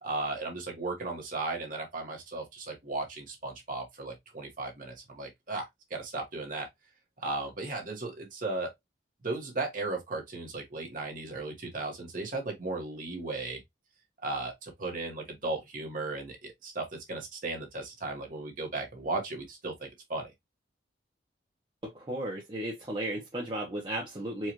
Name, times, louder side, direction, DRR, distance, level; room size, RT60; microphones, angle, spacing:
voice 1, 0.0-6.7 7.2-8.7 9.2-13.6 14.2-20.3, right 2 dB, 45° right, 1.4 m, -36 dB
voice 2, 21.8-24.5, right 1 dB, 25° right, 0.8 m, -35 dB
4.6 x 2.4 x 2.9 m
head